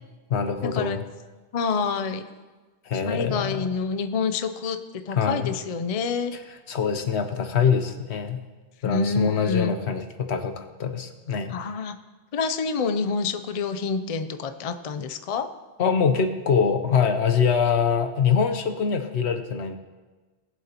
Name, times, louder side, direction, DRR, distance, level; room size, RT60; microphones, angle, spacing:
voice 1, 0.3-1.0 2.8-3.7 5.2-5.5 6.7-8.4 8.8-11.6 15.8-19.8, left 6 dB, 75° left, 7 dB, 1.1 m, -24 dB
voice 2, 1.5-2.3 3.1-6.3 8.8-9.7 11.5-11.9 12.3-15.5, left 5 dB, 45° left, 8 dB, 0.5 m, -27 dB
18.5 x 7.8 x 2.9 m, 1.3 s
omnidirectional pair, 1.1 m